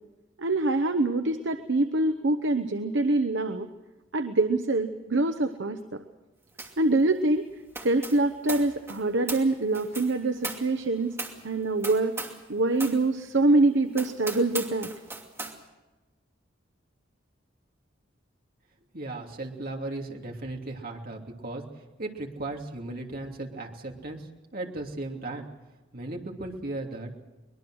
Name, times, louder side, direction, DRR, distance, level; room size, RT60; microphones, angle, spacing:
voice 1, 0.4-3.7 4.1-6.0 6.8-7.5 7.8-11.2 11.4-12.1 12.5-14.9, right 2 dB, 65° right, 7 dB, 1.0 m, -25 dB
sound 1, 6.6-6.9 7.1-12.5 12.8-13.0 13.5-13.6 13.9-15.6, right 3 dB, 15° right, 2.6 m, -38 dB
voice 2, 18.9-25.5 25.9-27.1, right 2 dB, 50° right, 1 dB, 2.9 m, -36 dB
23.5 x 21.5 x 6.4 m, 1.1 s
head